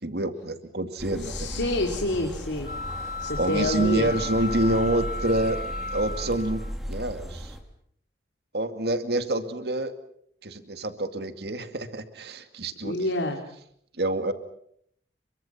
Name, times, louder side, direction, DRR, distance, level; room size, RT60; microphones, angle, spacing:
voice 1, 0.0-1.7 3.4-6.6 6.9-7.6 8.5-10.0 10.4-12.9 14.0-14.3, right 1 dB, 65° right, 9 dB, 2.2 m, -27 dB
sound 1, 1.0-7.6, equal, ahead, 3.6 m, -36 dB
voice 2, 1.2-4.1 12.8-13.4, left 1 dB, 85° left, 2 dB, 3.2 m, -28 dB
sound 2, 2.6-6.7, left 4 dB, 45° left, 1.4 m, -35 dB
30.0 x 24.0 x 5.9 m, 0.68 s
head